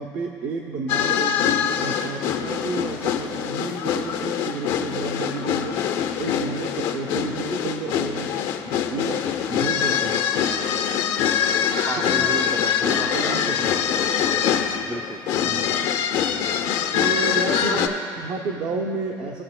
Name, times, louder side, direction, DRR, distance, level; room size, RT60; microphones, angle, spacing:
voice 1, 0.0-5.8 6.2-10.3 12.0-12.2 13.0-13.8 15.4-15.7 16.9-17.9 18.2-19.4, right 4 dB, 65° right, 1 dB, 0.8 m, -31 dB
sound 1, 0.9-17.9, left 8 dB, 75° left, 0.7 m, -24 dB
voice 2, 11.9-15.2 17.7-18.0, right 3 dB, 20° right, 8 dB, 0.5 m, -34 dB
18.0 x 6.9 x 2.2 m, 2.5 s
cardioid pair, 120°, 9 cm